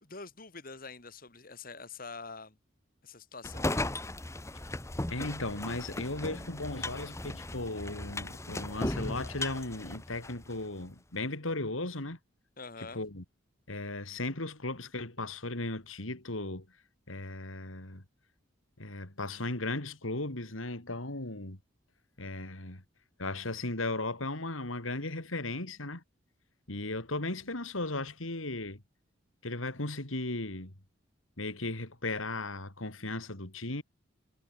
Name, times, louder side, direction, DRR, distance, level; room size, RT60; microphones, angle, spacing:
voice 1, 0.0-2.6 3.0-3.9 12.6-13.0, left 4 dB, 45° left, 2.9 m, -45 dB
sound 1, 3.4-10.6, left 1 dB, 15° left, 1.1 m, -37 dB
voice 2, 5.1-12.2 12.8-13.2 13.7-16.7 17.1-18.0 18.8-21.6 22.2-22.8 23.2-26.0 26.7-28.8 29.4-30.7 31.4-33.8, left 2 dB, 85° left, 3.7 m, -36 dB
head